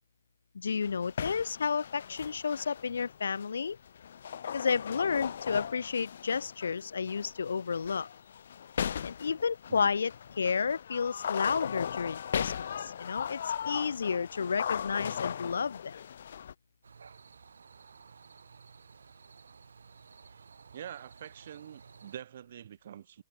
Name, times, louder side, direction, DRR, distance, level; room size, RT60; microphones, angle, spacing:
voice 1, 0.5-3.8 4.5-8.1 9.0-16.0, left 5 dB, 75° left, 0.9 m, -31 dB
sound 1, 0.8-16.5, left 8 dB, 45° left, 0.9 m, -38 dB
sound 2, 16.8-22.2, right 5 dB, 80° right, 7.9 m, -54 dB
voice 2, 20.7-23.2, right 10 dB, 35° right, 3.5 m, -45 dB
hypercardioid pair, 180°, 0 cm